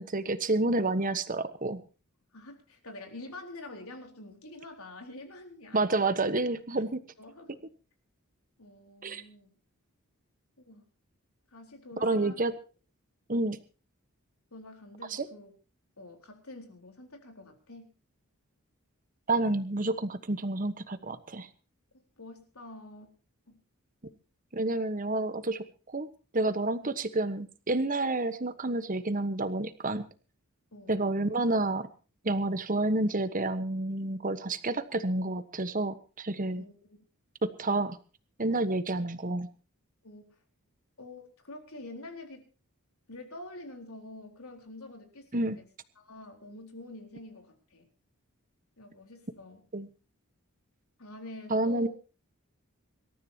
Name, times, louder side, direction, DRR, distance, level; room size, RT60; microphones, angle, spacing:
voice 1, 0.0-1.8 5.7-7.0 9.0-9.2 12.0-12.5 13.3-13.6 15.1-15.3 19.3-21.5 24.5-25.6 25.9-26.1 26.3-30.0 30.9-31.9 32.2-36.6 37.4-38.0 38.4-39.5 45.3-45.6 49.7-49.9 51.5-51.9, right 2 dB, 35° right, 11 dB, 1.2 m, -29 dB
voice 2, 2.3-6.2 7.2-7.6 8.6-9.6 10.6-10.8 11.5-12.4 14.5-15.5 16.0-17.9 22.2-23.1 23.5-23.6 30.7-31.1 36.5-37.0 40.0-40.4 41.0-42.5 43.1-45.6 46.0-47.9 48.8-49.6 51.0-51.9, left 2 dB, 70° left, 3 dB, 4.1 m, -47 dB
26.0 x 13.5 x 2.9 m, 0.35 s
head